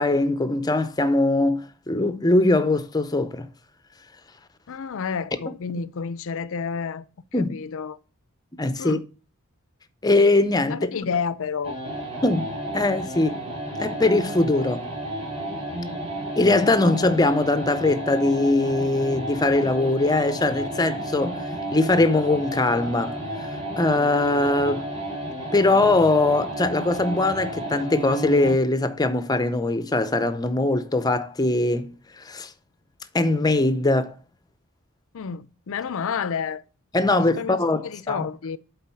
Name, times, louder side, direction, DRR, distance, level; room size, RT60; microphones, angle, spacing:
voice 1, 0.0-3.5 7.3-7.6 8.6-9.0 10.0-10.8 12.2-13.4 13.8-14.9 16.4-21.4 21.7-24.8 25.5-32.5 33.1-34.1 36.9-38.3, left 2 dB, 15° left, 0.6 m, -21 dB
voice 2, 4.7-7.1 7.3-8.0 8.8-9.0 10.7-11.8 35.1-36.6 37.1-38.6, left 6 dB, 60° left, 0.5 m, -30 dB
sound 1, 11.6-28.7, right 1 dB, 25° right, 2.9 m, -32 dB
8.6 x 3.9 x 5.6 m
head